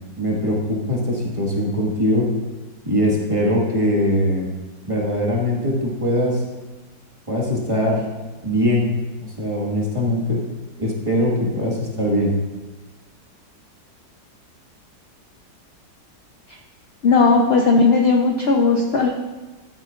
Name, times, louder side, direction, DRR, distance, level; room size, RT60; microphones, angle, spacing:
voice 1, 0.2-2.2 2.8-4.5 4.8-6.4 7.3-8.0 8.4-8.8 9.4-10.4 10.8-12.3, equal, 20° right, -4 dB, 1.5 m, -21 dB
voice 2, 17.0-19.1, left 4 dB, 70° left, 1 dB, 0.6 m, -16 dB
12.0 x 8.9 x 2.4 m, 1.2 s
omnidirectional pair, 2.0 m